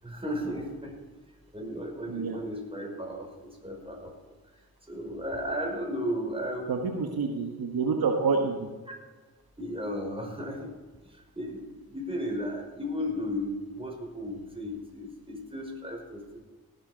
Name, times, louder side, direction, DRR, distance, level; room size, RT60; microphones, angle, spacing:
voice 1, 0.0-0.9 1.5-4.6 4.9-7.1 8.9-9.0 9.6-10.8 11.0-16.4, equal, 15° right, 1 dB, 5.3 m, -35 dB
voice 2, 6.7-8.7, right 4 dB, 75° right, 4 dB, 1.4 m, -28 dB
17.5 x 8.3 x 5.1 m, 1.3 s
supercardioid pair, 40°, 37 cm